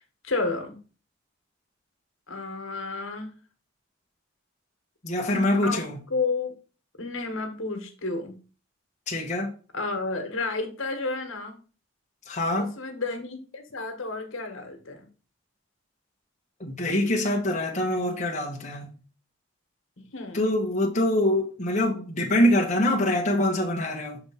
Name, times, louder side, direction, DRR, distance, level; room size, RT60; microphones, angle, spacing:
voice 1, 0.2-0.8 2.3-3.3 5.6-5.8 6.1-6.5 7.0-8.4 9.7-11.6 12.5-15.1 20.0-20.4, left 3 dB, 80° left, 1.5 m, -31 dB
voice 2, 5.0-6.0 9.1-9.5 12.3-12.7 16.6-18.9 20.3-24.2, left 1 dB, 35° left, 1.1 m, -24 dB
6.9 x 3.5 x 5.7 m
head